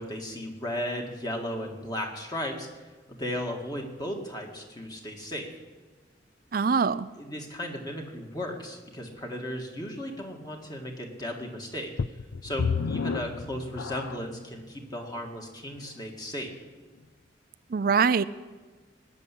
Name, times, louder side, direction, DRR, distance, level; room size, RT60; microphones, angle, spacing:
voice 1, 0.0-2.8 3.1-5.5 7.2-11.9 12.4-16.5, left 1 dB, 20° left, 1 dB, 2.0 m, -35 dB
voice 2, 6.5-7.1 17.7-18.2, right 5 dB, 50° right, 15 dB, 0.4 m, -23 dB
sound 1, 12.0-14.4 15.1-15.2 15.8-15.9, left 5 dB, 85° left, 0.4 m, -31 dB
19.0 x 7.2 x 9.9 m, 1.3 s
head